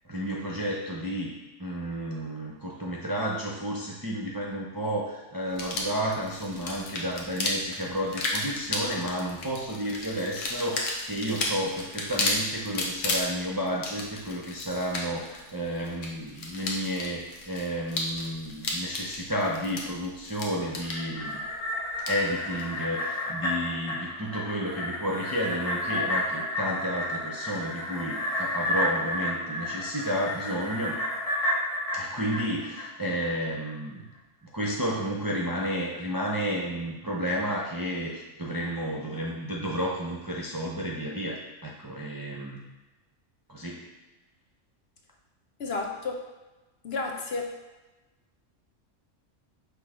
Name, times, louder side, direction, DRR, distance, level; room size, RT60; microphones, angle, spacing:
voice 1, 0.0-1.3 1.6-21.4 22.1-31.0 31.9-34.0 34.5-42.6 43.5-43.9, equal, 25° right, -3 dB, 0.5 m, -31 dB
sound 1, 5.5-22.7, left 2 dB, 75° left, 1.2 m, -34 dB
sound 2, 20.7-33.3 33.7-33.8, left 1 dB, 90° left, 1.8 m, -31 dB
voice 2, 45.6-46.2 46.8-47.5, left 3 dB, 60° left, 2 dB, 0.9 m, -32 dB
6.1 x 3.4 x 4.9 m, 1.1 s
omnidirectional pair, 1.3 m